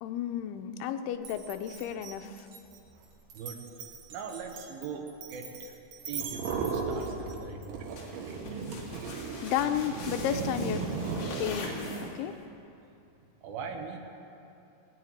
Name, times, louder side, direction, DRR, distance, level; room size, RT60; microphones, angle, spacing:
voice 1, 0.0-2.5 9.4-10.8 11.4-12.4, left 9 dB, 90° left, 8 dB, 2.7 m, -32 dB
Glass, 1.2-7.7, right 6 dB, 55° right, 2.5 m, -44 dB
voice 2, 4.1-5.8 6.0-8.4 13.4-14.0, right 5 dB, 75° right, 2 dB, 2.9 m, -41 dB
sound 1, 6.2-7.4 7.7-12.0, right 4 dB, 90° right, 3.6 m, -35 dB
sound 2, 8.0-12.4, left 2 dB, 50° left, 3.3 m, -43 dB
19.0 x 6.6 x 9.4 m, 2.7 s
omnidirectional pair, 4.5 m